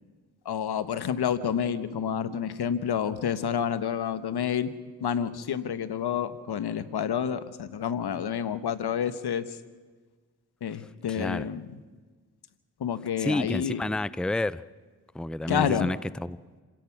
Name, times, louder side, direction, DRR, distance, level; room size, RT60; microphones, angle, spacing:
voice 1, 0.4-4.7 5.0-9.4 10.6-11.7 12.8-13.8 15.5-15.9, left 8 dB, 75° left, 13 dB, 1.2 m, -29 dB
voice 2, 11.1-11.5 13.2-14.6 15.1-16.4, left 1 dB, ahead, 18 dB, 0.6 m, -30 dB
27.5 x 17.0 x 6.0 m, 1.4 s
cardioid pair, 50°, 39 cm